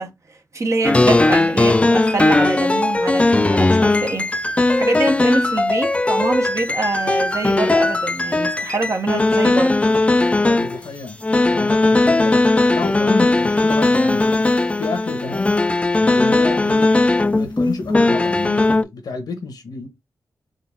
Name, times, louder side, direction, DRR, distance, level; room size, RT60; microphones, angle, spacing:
voice 1, 0.0-4.3 4.8-9.8, right 3 dB, 45° right, 0.9 m, -25 dB
sound 1, 0.8-10.9 11.2-18.8, left 2 dB, 20° left, 0.3 m, -18 dB
voice 2, 10.4-11.2 11.5-12.4 12.7-14.5 14.8-15.5 16.0-19.9, left 3 dB, 80° left, 1.1 m, -30 dB
3.9 x 2.6 x 3.5 m
cardioid pair, 65°, 7 cm